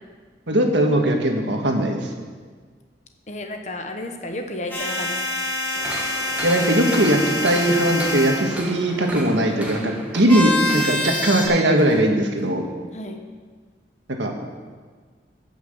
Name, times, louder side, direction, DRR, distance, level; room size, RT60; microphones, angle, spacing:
voice 1, 0.5-2.0 6.4-12.6 14.2-14.4, right 1 dB, 90° right, 3 dB, 1.7 m, -19 dB
voice 2, 3.3-5.2 12.9-13.2, left 1 dB, 40° left, 4 dB, 1.1 m, -32 dB
sound 1, 4.7-8.5 10.3-11.5, left 1 dB, 10° left, 2.2 m, -26 dB
sound 2, 5.7-12.0 12.4-12.5, right 1 dB, 10° right, 1.4 m, -36 dB
15.5 x 6.0 x 7.3 m, 1.6 s
head